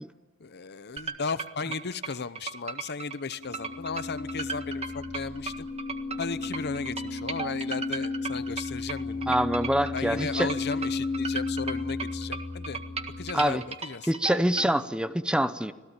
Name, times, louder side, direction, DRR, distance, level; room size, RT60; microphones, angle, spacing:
voice 1, 0.4-5.7 6.2-9.3 9.9-12.8 13.2-14.1, left 5 dB, 55° left, 14 dB, 0.9 m, -35 dB
sound 1, 1.0-14.7, right 5 dB, 30° right, 1.7 m, -36 dB
sound 2, 3.2-13.3, left 3 dB, 80° right, 4.2 m, -34 dB
voice 2, 9.3-10.5 13.3-13.6 14.1-15.7, right 1 dB, 5° right, 12 dB, 0.7 m, -25 dB
26.5 x 17.5 x 9.0 m, 1.3 s
head